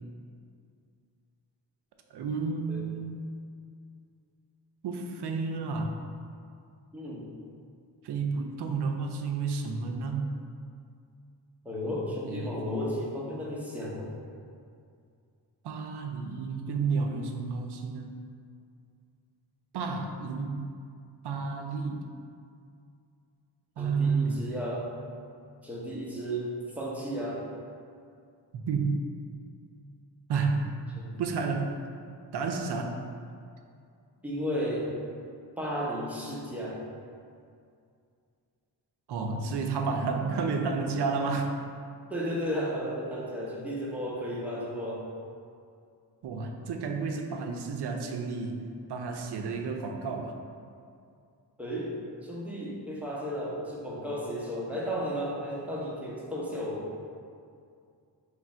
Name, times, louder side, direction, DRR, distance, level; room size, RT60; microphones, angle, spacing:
voice 1, 2.1-3.2 4.8-6.0 8.0-10.3 12.2-12.6 15.6-18.1 19.7-20.7 21.2-22.0 23.8-24.5 28.5-29.0 30.3-30.7 31.2-31.7 32.3-33.0 39.1-41.5 46.2-48.6 48.9-50.4, right 4 dB, 70° right, 3 dB, 0.5 m, -31 dB
voice 2, 6.9-7.3 11.6-14.1 23.8-24.9 25.6-27.4 31.0-31.2 34.2-35.0 35.6-36.9 42.1-45.1 51.6-56.9, equal, 5° right, -5 dB, 0.7 m, -34 dB
3.1 x 2.5 x 4.2 m, 2.4 s
wide cardioid pair, 85°, 43 cm